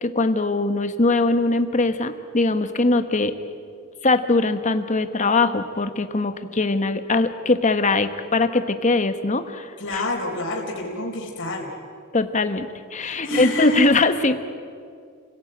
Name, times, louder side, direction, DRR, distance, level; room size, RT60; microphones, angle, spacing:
voice 1, 0.0-3.3 4.0-10.0 12.1-14.4, left 3 dB, 35° left, 9 dB, 1.3 m, -21 dB
voice 2, 9.8-11.7 13.2-13.8, left 2 dB, 60° left, -1 dB, 4.1 m, -27 dB
29.5 x 17.0 x 8.9 m, 2.3 s
head